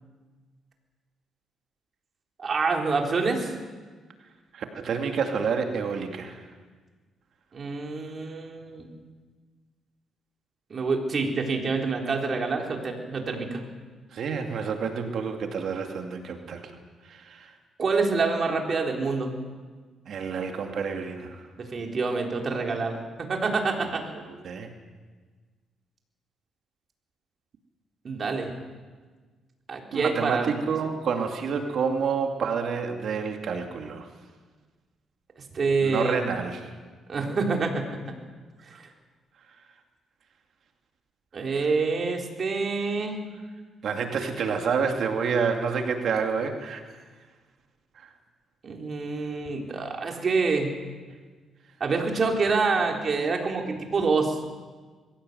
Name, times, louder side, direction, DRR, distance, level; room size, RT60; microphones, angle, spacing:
voice 1, 2.4-3.5 7.5-8.9 10.7-13.6 17.8-19.3 21.6-24.0 28.0-28.5 29.7-30.5 35.5-36.3 37.1-37.9 38.7-38.9 41.3-43.3 48.6-50.7 51.8-54.4, right 4 dB, 45° right, 1 dB, 3.9 m, -27 dB
voice 2, 4.5-6.4 14.1-16.8 17.0-17.5 20.1-21.4 24.1-24.7 29.9-34.1 35.8-36.7 43.8-46.8 48.0-48.1, right 6 dB, 65° right, 4 dB, 2.5 m, -29 dB
22.0 x 16.5 x 8.0 m, 1.4 s
cardioid pair, 90°, 0 cm